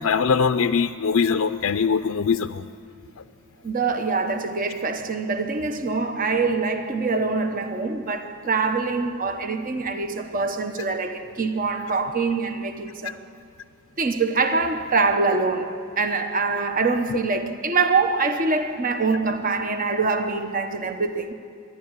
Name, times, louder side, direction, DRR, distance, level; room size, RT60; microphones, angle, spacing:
voice 1, 0.0-2.7 17.1-17.2, left 6 dB, 80° left, 0.5 m, -22 dB
voice 2, 3.6-13.2 14.0-21.3, right 4 dB, 40° right, 1.0 m, -24 dB
26.0 x 11.5 x 9.7 m
head